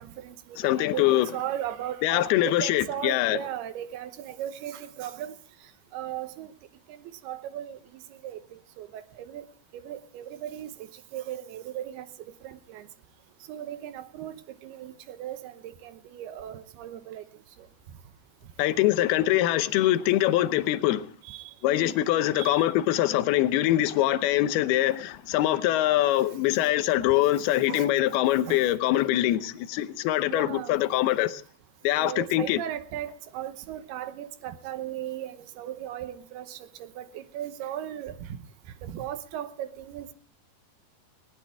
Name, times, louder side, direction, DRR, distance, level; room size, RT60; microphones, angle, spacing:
voice 1, 0.0-5.4 5.9-6.5 6.9-8.4 8.8-9.5 9.7-12.1 12.4-12.9 13.5-17.2 21.2-22.7 27.7-27.9 28.5-28.7 30.3-30.8 32.0-38.4 38.8-40.1, right 11 dB, 75° right, 2.9 m, -37 dB
voice 2, 0.6-1.3 2.0-3.4 18.6-21.1 21.6-31.4 31.8-32.6, left 14 dB, 75° left, 2.8 m, -23 dB
20.0 x 19.0 x 3.5 m
omnidirectional pair, 4.7 m